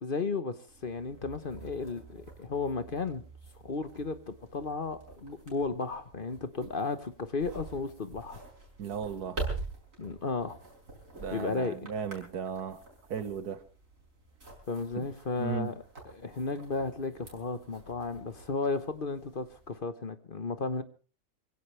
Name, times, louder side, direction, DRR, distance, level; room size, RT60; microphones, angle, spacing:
voice 1, 0.0-3.2 3.6-8.4 10.0-10.5 11.3-11.8 14.7-15.7 16.1-20.8, left 4 dB, 40° left, 11 dB, 1.1 m, -34 dB
sound 1, 0.7-19.8, right 3 dB, 60° right, 5.6 m, -46 dB
voice 2, 8.8-9.4 11.2-12.8 13.1-13.6 15.0-15.1 15.4-15.7, right 7 dB, 90° right, 11 dB, 1.9 m, -36 dB
25.0 x 16.5 x 3.3 m, 0.38 s
omnidirectional pair, 1.6 m